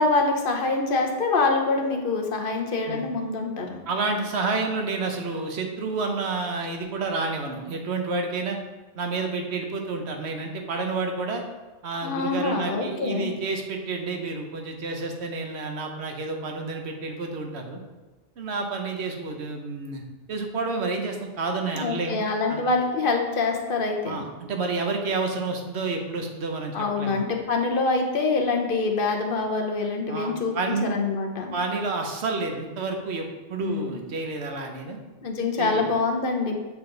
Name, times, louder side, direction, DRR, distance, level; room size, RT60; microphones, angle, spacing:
voice 1, 0.0-3.8 12.0-13.3 21.7-24.2 26.7-31.5 33.6-34.0 35.2-36.5, left 3 dB, 60° left, 2 dB, 0.9 m, -25 dB
voice 2, 3.9-8.6 9.0-11.4 11.8-17.8 18.4-20.0 20.3-22.2 22.5-22.6 24.0-27.2 30.1-30.9 31.5-35.0 35.6-35.9, right 3 dB, 85° right, 3 dB, 1.1 m, -29 dB
7.1 x 3.7 x 3.8 m, 1.2 s
omnidirectional pair, 1.1 m